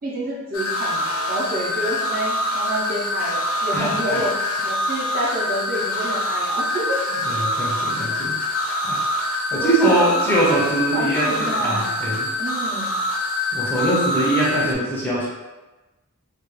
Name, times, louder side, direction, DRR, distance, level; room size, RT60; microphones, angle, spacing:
voice 1, 0.0-7.0 8.1-8.2 9.5-12.0 12.4-13.0 14.5-14.8, right 1 dB, 40° right, -4 dB, 0.5 m, -29 dB
sound 1, 0.5-14.8, left 1 dB, 65° left, 0.5 m, -25 dB
voice 2, 3.7-4.2 7.2-8.4 8.8-9.0 9.5-12.3 13.5-15.3, right 1 dB, 10° left, -6 dB, 0.5 m, -22 dB
2.3 x 2.2 x 3.0 m, 1.1 s
head